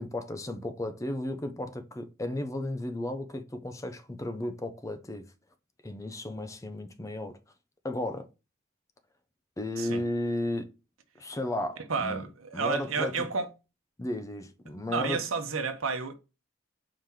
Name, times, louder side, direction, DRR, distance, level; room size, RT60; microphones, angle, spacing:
voice 1, 0.0-5.3 5.8-7.4 7.8-8.3 9.6-10.7 11.2-12.3 12.5-13.3 14.0-15.2, left 1 dB, 15° left, 0.5 m, -34 dB
voice 2, 11.9-13.5 14.9-16.1, right 4 dB, 85° right, 0.9 m, -31 dB
4.9 x 2.9 x 3.7 m
head